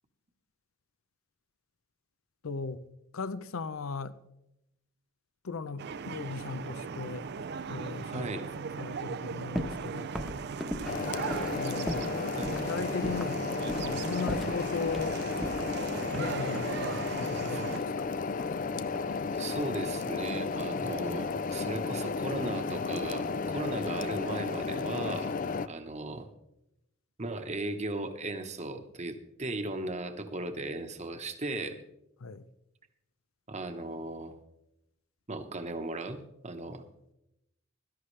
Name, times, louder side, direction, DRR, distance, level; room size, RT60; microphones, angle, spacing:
voice 1, 2.4-2.8 3.1-4.2 5.4-8.5 8.8-10.1 11.5-12.2 12.7-13.4 13.8-15.2 16.1-18.1 32.2-32.4, left 4 dB, 90° left, 0.6 m, -37 dB
sound 1, 5.8-17.8, right 5 dB, 55° right, 0.4 m, -38 dB
voice 2, 8.1-8.4 12.3-12.5 17.5-17.6 19.3-25.3 25.6-26.3 27.2-31.8 33.5-34.3 35.3-36.8, right 2 dB, 35° right, 1.1 m, -37 dB
sound 2, 9.5-9.8 10.1-12.2 12.4-12.7 13.0-13.4 13.7-14.0 14.3-15.1 15.4-16.8 17.7-18.6 18.9-19.4, equal, ahead, 1.1 m, -38 dB
sound 3, 10.9-25.7, left 4 dB, 40° left, 0.4 m, -33 dB
16.5 x 13.0 x 3.3 m
head